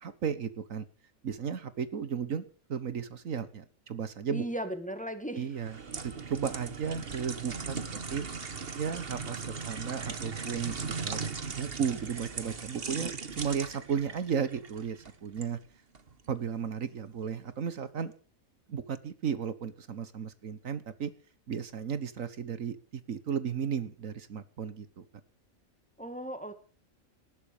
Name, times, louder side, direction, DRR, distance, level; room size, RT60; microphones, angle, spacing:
voice 1, 0.0-0.8 1.2-4.4 5.3-5.8 6.0-7.8 8.1-8.3 8.7-15.6 16.3-18.1 18.7-21.1 21.5-25.0, right 7 dB, 70° right, 14 dB, 1.6 m, -34 dB
voice 2, 4.3-5.5 26.0-26.5, right 1 dB, 5° left, 9 dB, 2.0 m, -36 dB
sound 1, 5.5-15.5 15.9-16.1, right 5 dB, 45° right, 1.6 m, -38 dB
19.5 x 11.5 x 5.1 m, 0.38 s
omnidirectional pair, 1.4 m